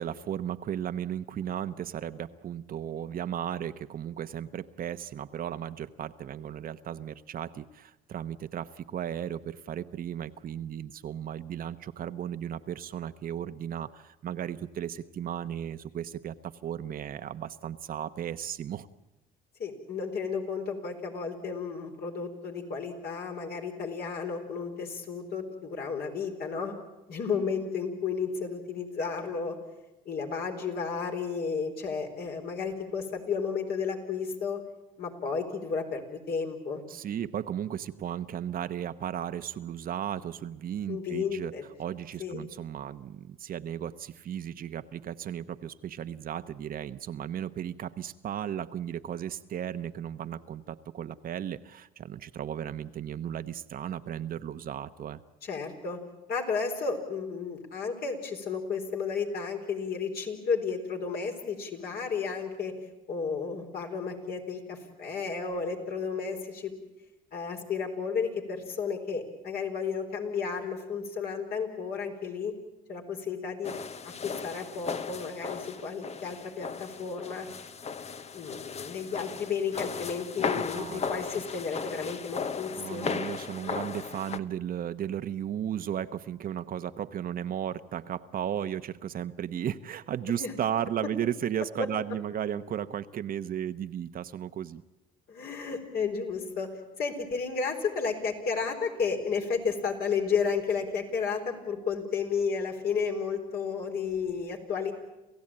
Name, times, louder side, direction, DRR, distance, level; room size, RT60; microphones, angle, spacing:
voice 1, 0.0-18.9 36.9-41.5 41.8-55.2 80.5-81.0 81.3-81.4 82.8-94.8, right 10 dB, 55° right, 11 dB, 1.0 m, -35 dB
voice 2, 19.6-26.7 27.1-29.6 30.1-34.6 35.0-36.8 40.9-41.6 42.2-42.5 55.4-56.0 56.3-62.7 63.1-66.7 67.3-72.5 72.9-73.7 74.0-77.5 78.3-83.2 90.4-90.5 95.3-96.7 97.0-104.9, left 5 dB, 60° left, 3 dB, 4.3 m, -32 dB
sound 1, 73.6-84.4, left 5 dB, 35° left, 1.0 m, -36 dB
28.0 x 15.5 x 8.8 m, 1.0 s
supercardioid pair, 85°, 18 cm